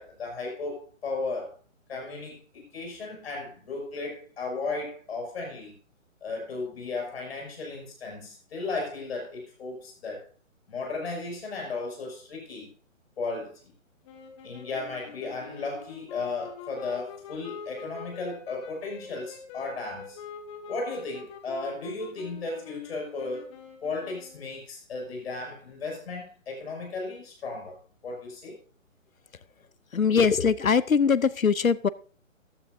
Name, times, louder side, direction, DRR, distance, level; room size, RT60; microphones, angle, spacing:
voice 1, 0.0-1.5 1.9-5.7 6.2-10.2 10.7-12.7 13.2-13.7 14.4-20.2 20.7-23.5 23.8-27.8 28.0-28.5, left 3 dB, 50° left, 6.2 m, -35 dB
Sax Alto - C minor, 14.0-24.5, left 6 dB, 25° left, 1.5 m, -45 dB
voice 2, 29.9-31.9, left 6 dB, 90° left, 0.8 m, -22 dB
15.0 x 11.0 x 2.6 m
figure-of-eight pair, 140°, 40 cm